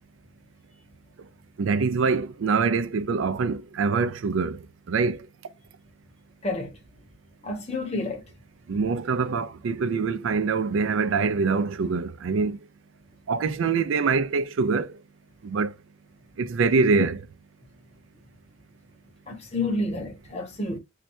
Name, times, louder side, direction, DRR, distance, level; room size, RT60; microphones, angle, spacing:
voice 1, 1.6-4.6 4.9-5.2 8.7-12.6 13.3-14.9 15.4-15.7 16.4-17.2, right 4 dB, 75° right, 0.4 m, -24 dB
voice 2, 6.4-6.8 7.4-8.2 19.3-20.8, left 2 dB, 30° left, 1.0 m, -29 dB
3.1 x 2.8 x 2.6 m
head